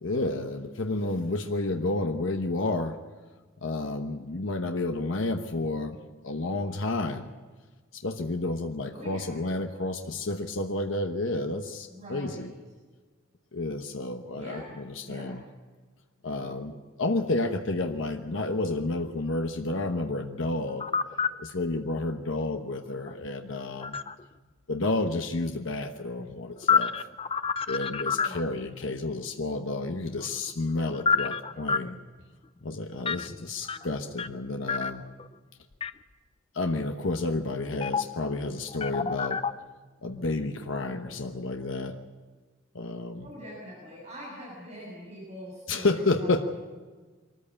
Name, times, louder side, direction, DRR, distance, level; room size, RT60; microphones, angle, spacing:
voice 1, 0.0-3.0 3.6-6.0 6.2-7.3 7.9-12.5 13.5-15.4 16.2-20.9 21.4-24.0 24.7-27.1 27.7-32.0 32.6-35.0 36.5-39.4 40.0-42.0 42.7-43.3 45.7-46.4, left 2 dB, 70° left, 5 dB, 1.1 m, -30 dB
voice 2, 8.9-9.3 11.9-12.5 14.3-14.7 15.1-15.4 28.2-28.4 28.6-28.7 33.1-33.2 33.6-33.9 43.2-46.4, equal, 35° right, -4 dB, 7.2 m, -43 dB
sound 1, 20.7-21.4 23.1-24.2 26.2-28.6 30.1-31.9 33.0-33.3 33.7-34.4 34.7-35.3 35.8-35.9 37.8-38.3 38.6-39.5, left 6 dB, 25° left, 0.5 m, -28 dB
23.5 x 14.0 x 8.7 m, 1.4 s
head